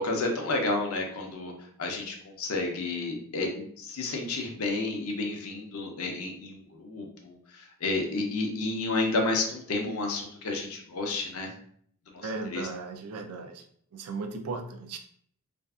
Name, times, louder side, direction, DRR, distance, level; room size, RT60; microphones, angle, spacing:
voice 1, 0.0-11.5 12.1-12.2 12.5-12.7, left 2 dB, 75° left, 2 dB, 0.6 m, -31 dB
voice 2, 12.2-13.6 13.9-15.0, right 3 dB, 90° right, 5 dB, 0.4 m, -36 dB
2.6 x 2.4 x 2.3 m, 0.62 s
head